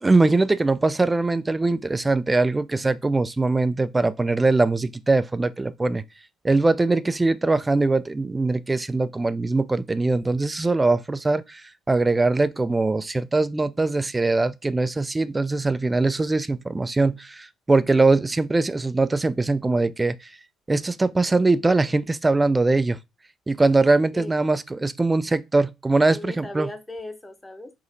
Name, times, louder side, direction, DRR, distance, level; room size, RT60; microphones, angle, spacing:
voice 1, 0.0-6.0 6.4-20.3 20.7-23.0 23.5-26.7, right 3 dB, 20° right, 0.3 m, -22 dB
voice 2, 25.9-27.7, left 1 dB, 15° left, 0.9 m, -37 dB
4.9 x 2.8 x 2.7 m
hypercardioid pair, 50°, 0 cm